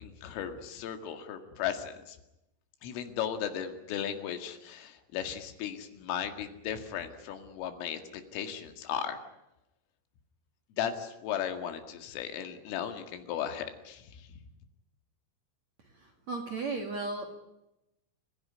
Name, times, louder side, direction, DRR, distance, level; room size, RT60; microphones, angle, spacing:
voice 1, 0.0-2.2 2.8-9.2 10.8-14.4, left 9 dB, 85° left, 7 dB, 4.6 m, -36 dB
voice 2, 15.8-17.2, right 3 dB, 50° right, 4 dB, 2.3 m, -36 dB
28.0 x 16.0 x 9.9 m, 0.92 s
omnidirectional pair, 5.7 m